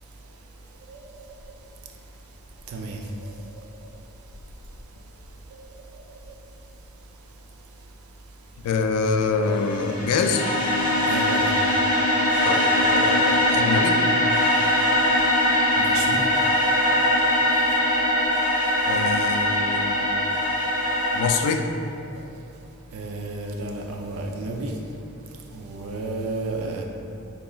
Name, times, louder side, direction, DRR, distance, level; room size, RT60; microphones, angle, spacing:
voice 1, 2.7-3.3 5.5-5.7 11.1-11.6 15.8-16.2 16.6-16.8 17.3-17.4 22.9-24.7 25.5-26.8, right 2 dB, 70° right, 2 dB, 0.4 m, -32 dB
voice 2, 8.6-10.5 12.4-14.0 18.9-20.1 21.1-21.7, left 4 dB, 90° left, 6 dB, 0.3 m, -25 dB
sound 1, 9.4-21.3, left 1 dB, 40° left, 0.7 m, -21 dB
4.8 x 2.9 x 2.3 m, 2.7 s
head